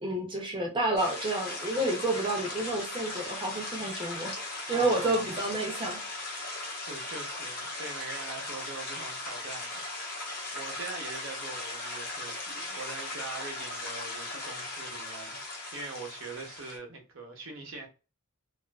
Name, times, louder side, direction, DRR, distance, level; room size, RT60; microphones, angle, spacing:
voice 1, 0.0-4.4 4.7-6.0, right 1 dB, 20° right, 0.6 m, -30 dB
sound 1, 1.0-16.8, left 2 dB, 45° left, 0.8 m, -38 dB
voice 2, 4.6-5.4 6.4-9.8 10.2-17.9, right 3 dB, 60° right, 0.8 m, -43 dB
2.4 x 2.4 x 2.3 m
head